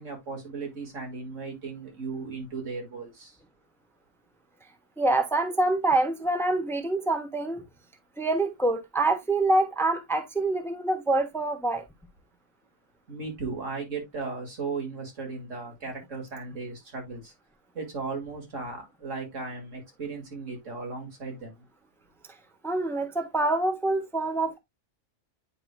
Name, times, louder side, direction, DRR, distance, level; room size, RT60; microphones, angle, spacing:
voice 1, 0.0-3.3 13.1-17.3 17.7-21.7, right 4 dB, 90° right, 2.5 m, -36 dB
voice 2, 5.0-7.6 8.2-11.8 22.6-24.6, right 2 dB, ahead, 0.8 m, -26 dB
9.1 x 4.8 x 2.2 m
omnidirectional pair, 1.2 m